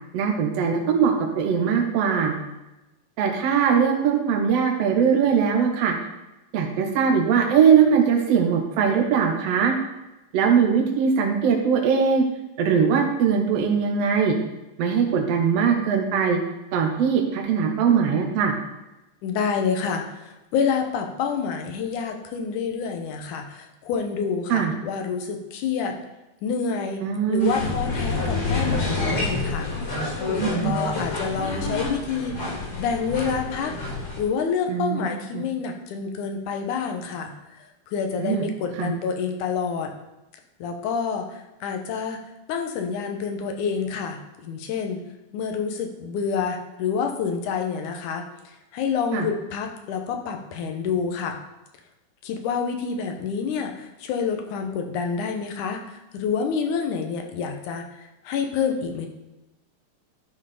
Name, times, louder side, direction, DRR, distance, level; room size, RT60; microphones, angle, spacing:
voice 1, 0.1-2.3 3.2-5.9 6.5-9.7 10.3-12.2 12.6-14.4 14.8-16.4 16.7-18.5 24.5-24.7 27.0-27.5 30.4-30.7 34.7-35.4 38.2-38.4 38.8-38.9 49.1-49.3, right 7 dB, 70° right, 2 dB, 1.5 m, -21 dB
voice 2, 19.2-26.0 26.4-27.0 27.3-29.7 30.4-33.7 34.2-39.9 40.6-42.2 42.5-45.0 45.3-48.3 48.7-51.4 52.2-57.9 58.2-59.1, left 6 dB, 75° left, 4 dB, 2.4 m, -28 dB
sound 1, 27.4-34.2, left 2 dB, 40° left, 3.1 m, -28 dB
11.5 x 4.6 x 4.9 m, 1.0 s
omnidirectional pair, 3.8 m